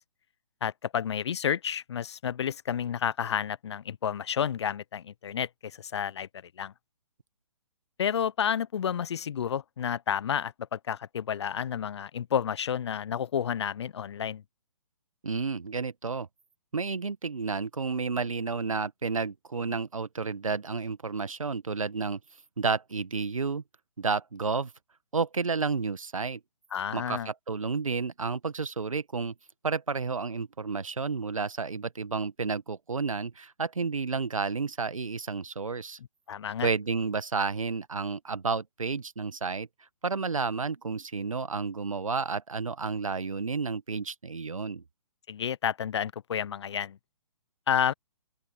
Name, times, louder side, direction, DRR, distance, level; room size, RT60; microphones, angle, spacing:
voice 1, 0.6-6.3 6.6-6.7 8.0-14.4 26.7-27.3 36.3-36.7 45.3-47.0 47.7-47.9, left 8 dB, 55° left, 0.9 m, -30 dB
voice 2, 15.2-16.3 16.7-22.2 22.6-23.6 24.0-24.7 25.1-26.4 26.9-29.3 29.6-36.0 36.6-39.7 40.0-44.8, right 4 dB, 75° right, 1.6 m, -31 dB
open air
figure-of-eight pair, 130°, 17 cm